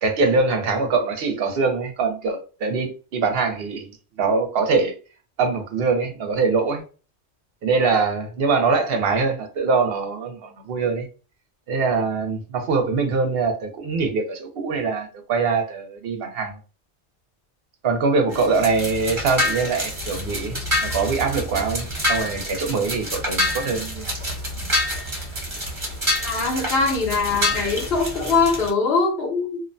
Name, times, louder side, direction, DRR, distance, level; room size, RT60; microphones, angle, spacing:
voice 1, 0.0-3.9 4.2-5.0 5.4-6.8 7.6-11.1 11.7-16.6 17.8-24.2, right 4 dB, 65° right, 0.8 m, -23 dB
sound 1, 18.3-28.7, left 1 dB, 25° right, 1.0 m, -27 dB
voice 2, 26.2-29.6, left 4 dB, 65° left, 0.9 m, -22 dB
2.6 x 2.1 x 2.5 m
omnidirectional pair, 1.2 m